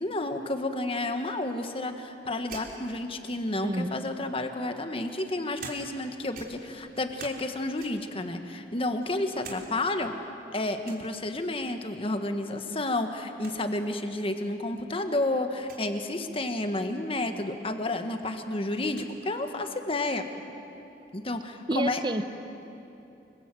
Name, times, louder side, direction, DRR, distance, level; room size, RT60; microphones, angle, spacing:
voice 1, 0.0-10.1 10.5-20.2 21.1-22.0, left 2 dB, 30° left, 7 dB, 1.6 m, -31 dB
sound 1, 2.5-3.7 4.5-6.1 6.3-7.5 7.8-8.2 8.7-9.6 10.0-10.1 10.8-11.1 12.5-12.9 13.1-13.2 13.4-13.6 14.4-14.5 15.6-15.9 17.5-17.6 18.0-19.1, right 4 dB, 55° right, 3.5 m, -46 dB
voice 2, 3.6-4.0 21.7-22.2, right 1 dB, 25° right, 11 dB, 0.9 m, -29 dB
26.0 x 25.0 x 7.8 m, 2.9 s
head